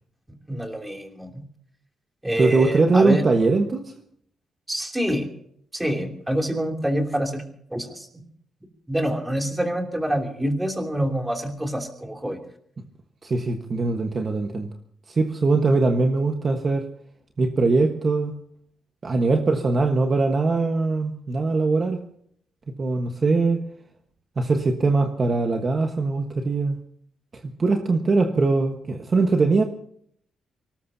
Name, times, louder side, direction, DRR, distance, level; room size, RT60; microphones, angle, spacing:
voice 1, 0.5-1.4 2.2-3.2 4.7-5.3 5.7-7.4 7.7-8.2 8.9-12.4, equal, 10° right, 3 dB, 3.0 m, -26 dB
voice 2, 2.4-3.8 13.2-14.7 15.1-16.9 17.4-18.3 19.0-22.0 22.8-23.6 24.4-26.8 27.6-29.6, right 3 dB, 30° right, 4 dB, 1.4 m, -21 dB
24.5 x 19.5 x 2.8 m, 0.66 s
cardioid pair, 150°, 0 cm